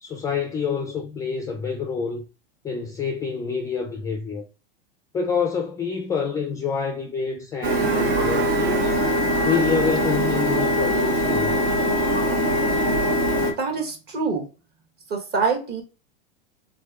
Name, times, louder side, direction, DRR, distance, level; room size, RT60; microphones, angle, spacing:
voice 1, 0.0-2.3 2.6-4.4 5.1-9.0 9.4-11.5, left 5 dB, 10° left, 0.3 m, -27 dB
Printer, 7.6-13.5, equal, 80° right, 1.9 m, -22 dB
voice 2, 13.6-14.5 15.1-15.8, right 4 dB, 35° right, 1.4 m, -25 dB
3.5 x 3.3 x 3.6 m
supercardioid pair, 135°, 30 cm